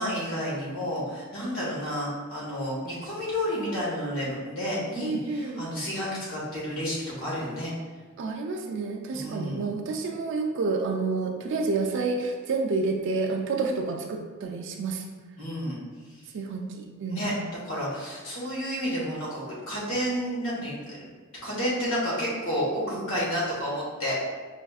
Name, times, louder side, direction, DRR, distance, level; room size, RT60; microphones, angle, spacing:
voice 1, 0.0-7.7 9.1-9.6 15.4-15.8 17.1-17.3 17.6-21.0 21.4-24.2, equal, 85° left, -6 dB, 1.3 m, -30 dB
voice 2, 5.0-5.6 8.2-15.0 16.3-17.2, right 3 dB, 60° right, 3 dB, 0.3 m, -29 dB
4.9 x 2.5 x 2.3 m, 1.4 s
head